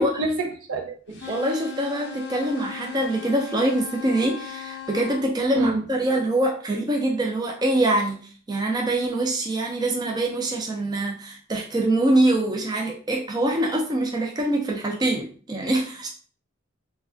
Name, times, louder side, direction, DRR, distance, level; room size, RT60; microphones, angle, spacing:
voice 1, 0.0-1.3 5.5-5.8, right 2 dB, 85° right, 3 dB, 0.6 m, -27 dB
sound 1, 1.1-5.2, left 9 dB, 55° left, 0.5 m, -38 dB
voice 2, 1.3-8.2 8.5-16.1, right 1 dB, 20° right, 0 dB, 0.4 m, -24 dB
3.2 x 2.2 x 2.4 m, 0.43 s
head